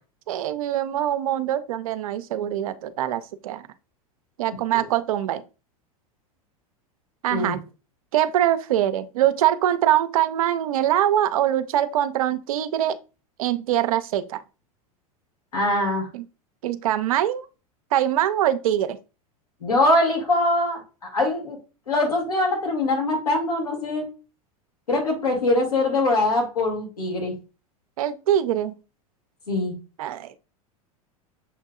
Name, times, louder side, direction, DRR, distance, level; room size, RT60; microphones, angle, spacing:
voice 1, 0.3-3.7 4.4-5.4 7.2-7.6 8.1-13.0 13.4-14.4 16.1-16.2 16.6-17.5 17.9-19.0 28.0-28.7 30.0-30.4, right 11 dB, 70° right, 0.5 m, -23 dB
voice 2, 15.5-16.1 19.6-20.8 21.1-21.6 21.9-24.1 24.9-27.3 29.5-29.7, left 2 dB, 90° left, 1.8 m, -22 dB
6.8 x 2.6 x 2.3 m
hypercardioid pair, 90°, 19 cm